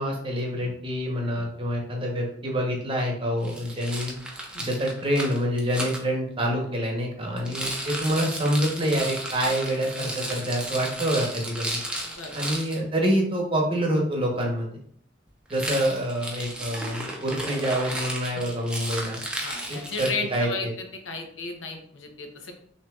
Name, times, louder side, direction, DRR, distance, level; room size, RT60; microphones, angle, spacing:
voice 1, 0.0-4.2 4.6-11.8 12.3-14.7 15.5-19.2 19.7-20.7, equal, 30° right, 0 dB, 0.9 m, -26 dB
Rattle, 3.4-6.0 7.4-12.8 15.5-20.5, right 1 dB, 5° right, 0.6 m, -34 dB
voice 2, 18.3-18.6 19.4-22.5, left 4 dB, 85° left, 4 dB, 0.8 m, -34 dB
6.1 x 2.8 x 2.3 m, 0.63 s
head